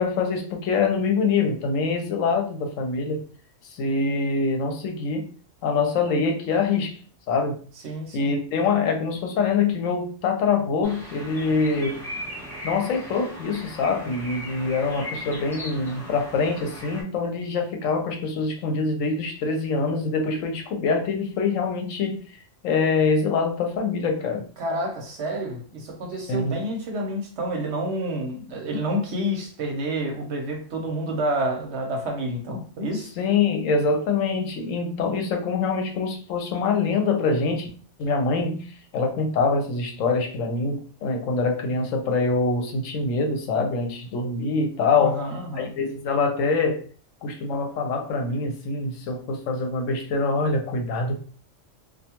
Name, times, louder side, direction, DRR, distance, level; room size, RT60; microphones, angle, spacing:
voice 1, 0.0-3.2 3.7-5.3 5.6-6.9 7.3-7.6 8.1-12.0 12.6-22.2 22.6-24.4 26.3-26.6 33.2-37.7 38.0-38.6 38.9-45.3 45.5-46.8 47.2-51.1, left 4 dB, 80° left, 1.0 m, -24 dB
voice 2, 7.8-8.3 24.6-33.1 45.0-45.7, right 1 dB, 65° right, 0.9 m, -29 dB
sound 1, 10.8-17.0, left 1 dB, 5° left, 0.6 m, -38 dB
2.4 x 2.2 x 2.8 m
omnidirectional pair, 1.3 m